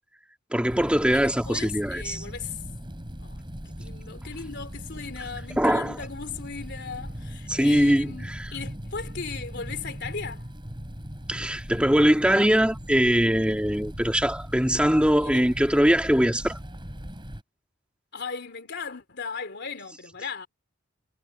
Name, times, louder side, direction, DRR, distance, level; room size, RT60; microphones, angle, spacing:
voice 1, 0.5-2.2 5.6-5.9 7.5-8.5 11.3-16.6, equal, 5° right, 2.1 m, -22 dB
sound 1, 0.6-17.4, equal, 25° right, 3.9 m, -39 dB
voice 2, 1.1-2.6 3.2-10.5 15.2-15.4 18.1-20.5, left 5 dB, 60° left, 3.6 m, -37 dB
head